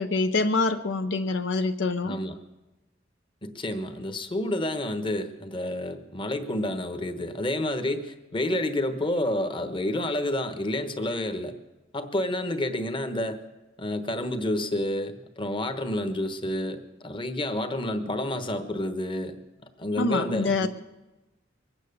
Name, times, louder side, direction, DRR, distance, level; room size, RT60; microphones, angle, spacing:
voice 1, 0.0-2.2 20.0-20.7, left 3 dB, 70° left, 8 dB, 0.7 m, -25 dB
voice 2, 2.0-2.3 3.4-11.5 11.9-13.4 13.8-19.4 19.8-20.7, left 1 dB, 25° left, 9 dB, 1.1 m, -29 dB
22.5 x 9.1 x 6.8 m, 1.1 s
head